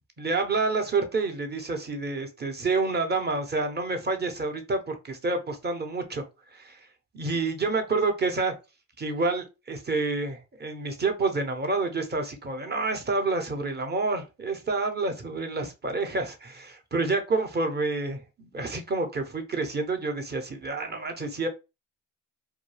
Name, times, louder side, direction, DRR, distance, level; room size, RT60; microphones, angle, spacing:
voice 1, 0.2-6.2 6.5-6.8 7.1-8.5 9.0-21.5, right 3 dB, 25° right, 0.8 m, -28 dB
2.3 x 2.2 x 3.1 m
supercardioid pair, 60°, 39 cm